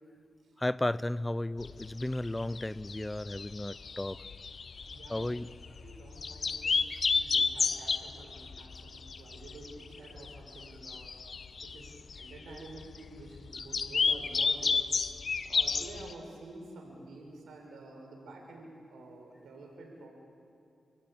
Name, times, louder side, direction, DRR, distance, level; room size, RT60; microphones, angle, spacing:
voice 1, 0.6-4.2 5.1-5.5, left 1 dB, 15° left, 18 dB, 0.6 m, -34 dB
sound 1, 1.6-16.1, left 5 dB, 50° left, 0.8 m, -32 dB
voice 2, 4.9-5.3 5.8-11.1 11.6-14.8 15.4-20.1, right 2 dB, 80° right, 1 dB, 6.1 m, -49 dB
28.5 x 16.5 x 8.9 m, 2.5 s
cardioid pair, 75°, 0 cm